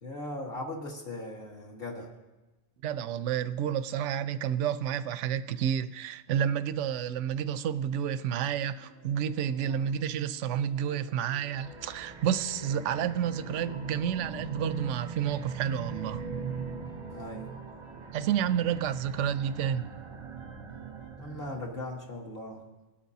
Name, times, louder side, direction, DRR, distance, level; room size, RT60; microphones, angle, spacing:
voice 1, 0.0-2.1 9.6-9.9 17.1-17.6 21.2-22.7, left 1 dB, 45° left, 1.7 m, -39 dB
voice 2, 2.8-16.2 18.1-19.8, right 9 dB, 65° right, 0.8 m, -30 dB
sound 1, 8.1-21.1, left 1 dB, 65° left, 3.2 m, -56 dB
sound 2, 11.4-22.0, right 5 dB, 25° right, 0.7 m, -41 dB
20.0 x 8.7 x 2.7 m
omnidirectional pair, 1.5 m